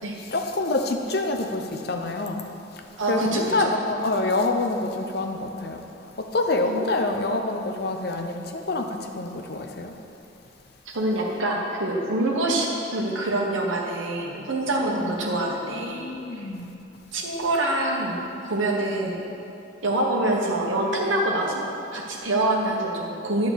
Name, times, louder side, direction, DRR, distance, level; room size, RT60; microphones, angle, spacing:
voice 1, 0.3-2.4 3.1-9.9 15.0-15.4 15.7-16.7, left 2 dB, 50° left, 4 dB, 0.6 m, -27 dB
voice 2, 3.0-3.7 6.7-6.9 10.9-16.5 17.1-18.2 18.5-19.2 19.8-21.6 21.9-23.5, right 1 dB, 80° right, -2 dB, 1.2 m, -25 dB
9.3 x 3.9 x 7.0 m, 2.7 s
head